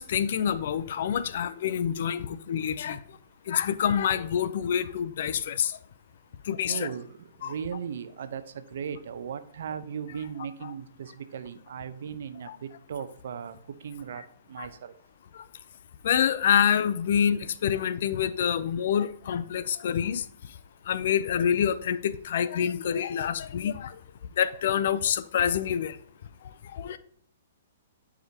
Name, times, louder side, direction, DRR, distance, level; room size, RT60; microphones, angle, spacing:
voice 1, 0.0-3.0 3.5-5.7 6.5-6.9 7.4-7.5 12.5-12.6 14.6-14.7 15.4-15.5 16.0-20.2 20.9-23.9 24.4-26.0 26.7-27.0, left 8 dB, 60° left, 0.6 m, -27 dB
voice 2, 6.7-14.9 22.7-22.9, right 7 dB, 65° right, 0.7 m, -37 dB
11.5 x 4.9 x 2.8 m
hypercardioid pair, 120°, 0 cm